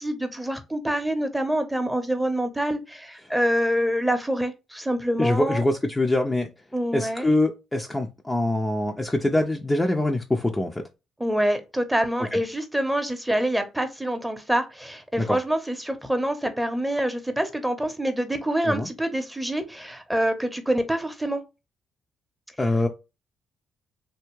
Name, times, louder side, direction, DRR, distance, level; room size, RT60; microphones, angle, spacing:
voice 1, 0.0-5.6 6.7-7.3 11.2-21.4, right 1 dB, 5° right, 0.8 m, -26 dB
voice 2, 5.2-6.5 6.9-10.8 12.2-12.3 15.2-15.4 18.6-18.9 22.6-22.9, left 1 dB, 15° left, 0.5 m, -24 dB
3.4 x 2.7 x 3.0 m
cardioid pair, 90°, 0 cm